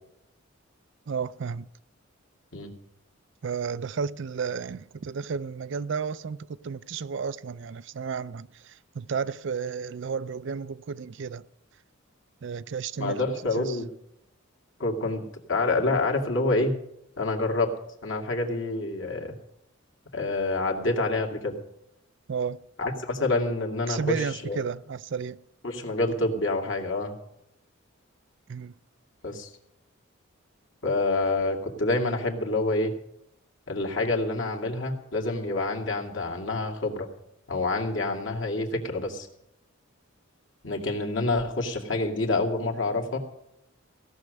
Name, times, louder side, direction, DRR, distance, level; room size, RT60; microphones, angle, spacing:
voice 1, 1.1-1.7 3.4-11.4 12.4-13.2 13.5-13.8 22.3-22.6 23.9-25.4 28.5-28.7, right 6 dB, 60° right, 0.4 m, -32 dB
voice 2, 13.0-13.9 14.8-15.2 15.5-16.7 17.2-17.7 18.0-19.3 20.1-21.6 22.8-24.6 25.6-27.1 29.2-29.5 30.8-32.9 33.7-37.1 37.5-39.3 40.6-43.2, left 2 dB, 60° left, 2.4 m, -27 dB
16.5 x 6.5 x 9.3 m
head